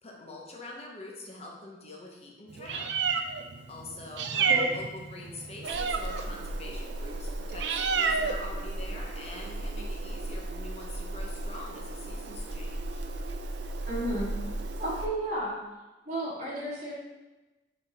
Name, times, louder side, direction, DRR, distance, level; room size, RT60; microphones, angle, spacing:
voice 1, 0.0-2.9 3.7-13.1, left 2 dB, 35° left, -1 dB, 0.9 m, -44 dB
Meow, 2.5-15.1, right 4 dB, 90° right, 0.5 m, -32 dB
voice 2, 13.9-14.3 14.8-15.6 16.1-16.9, right 1 dB, 40° right, -7 dB, 2.1 m, -32 dB
5.5 x 4.4 x 4.1 m, 1.1 s
head